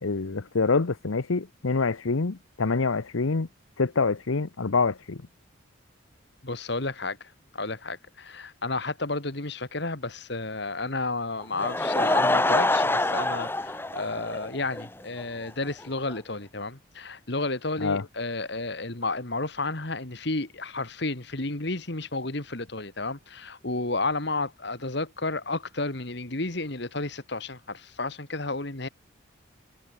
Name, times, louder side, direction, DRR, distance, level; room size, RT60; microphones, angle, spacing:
voice 1, 0.0-3.5 3.8-5.2 17.8-18.0, left 4 dB, 80° left, 0.9 m, -26 dB
voice 2, 6.4-7.2 7.5-28.9, left 2 dB, 55° left, 2.0 m, -32 dB
Laughter / Crowd, 11.4-14.9 15.2-15.3 15.8-15.9 16.1-16.2, left 2 dB, 10° left, 0.9 m, -25 dB
head